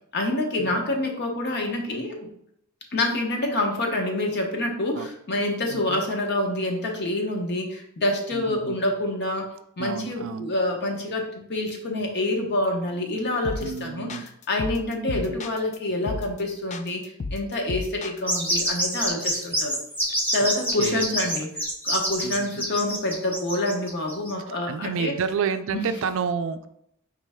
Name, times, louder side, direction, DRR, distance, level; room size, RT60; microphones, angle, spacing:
voice 1, 0.1-2.3 2.9-9.5 9.8-17.0 17.3-19.8 20.3-21.5 21.8-25.1 25.7-25.9, left 1 dB, 50° left, 2 dB, 0.9 m, -27 dB
voice 2, 5.7-6.0 8.3-8.8 9.8-10.5 13.6-14.3 15.1-15.4 20.8-21.1 22.2-22.7 24.7-26.7, right 6 dB, 65° right, 10 dB, 0.4 m, -30 dB
sound 1, 13.5-13.8 14.1-15.8 16.1-16.4 16.7-18.5, left 3 dB, 35° left, 0.3 m, -33 dB
sound 2, 18.3-24.3, right 1 dB, 10° left, 0.8 m, -27 dB
4.8 x 3.1 x 3.5 m, 0.74 s
head